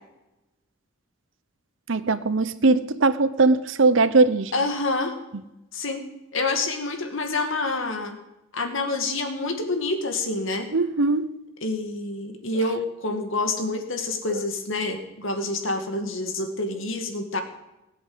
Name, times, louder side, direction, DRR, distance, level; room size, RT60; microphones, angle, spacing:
voice 1, 1.9-4.5 10.7-11.3, right 3 dB, 70° right, 0.8 m, -20 dB
voice 2, 4.5-5.1 5.7-6.0 6.3-8.2 8.5-10.7 11.6-17.4, left 2 dB, 75° left, 2.2 m, -27 dB
19.0 x 8.1 x 8.0 m
head